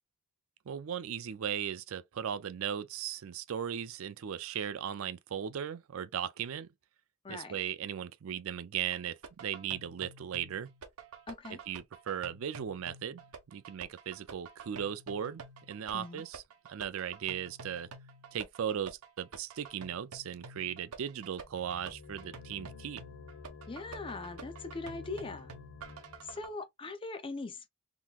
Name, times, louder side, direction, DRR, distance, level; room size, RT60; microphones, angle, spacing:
voice 1, 0.7-6.7 7.3-10.7 11.7-13.2 13.5-16.4 16.7-17.9 18.3-23.0, right 9 dB, 65° right, 0.4 m, -37 dB
voice 2, 7.2-7.6 11.3-11.6 15.9-16.2 23.7-25.5 26.2-27.7, left 3 dB, 25° left, 0.5 m, -41 dB
sound 1, 8.9-26.5, right 4 dB, 85° right, 0.8 m, -49 dB
sound 2, 21.4-26.5, left 4 dB, 75° left, 0.8 m, -50 dB
3.7 x 2.9 x 2.3 m
head